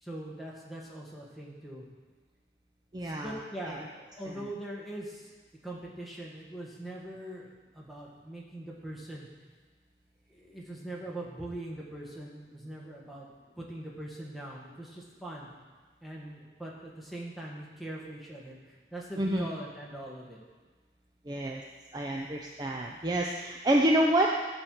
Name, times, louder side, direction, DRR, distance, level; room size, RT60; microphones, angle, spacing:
voice 1, 0.0-1.9 3.0-5.3 5.6-9.3 10.3-13.3 13.6-15.5 16.0-20.4, right 1 dB, ahead, -4 dB, 1.6 m, -42 dB
voice 2, 2.9-3.3 19.2-19.5 21.3-21.6 21.9-24.5, right 1 dB, 25° right, -1 dB, 0.5 m, -27 dB
12.0 x 4.5 x 6.5 m, 1.5 s
head